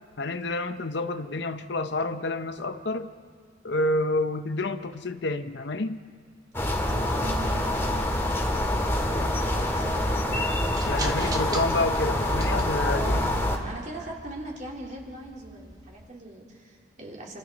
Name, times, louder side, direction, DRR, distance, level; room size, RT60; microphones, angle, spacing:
voice 1, 0.2-3.1 3.6-6.0 9.2-9.3 10.9-13.4, left 2 dB, 60° left, 0.7 m, -29 dB
sound 1, 6.5-13.6, left 1 dB, 15° left, 2.2 m, -26 dB
voice 2, 6.9-8.4 9.0-10.3 12.9-17.4, right 2 dB, 40° right, 3.7 m, -41 dB
sound 2, 8.7-16.1, right 2 dB, 20° right, 1.2 m, -42 dB
30.0 x 26.5 x 4.1 m
head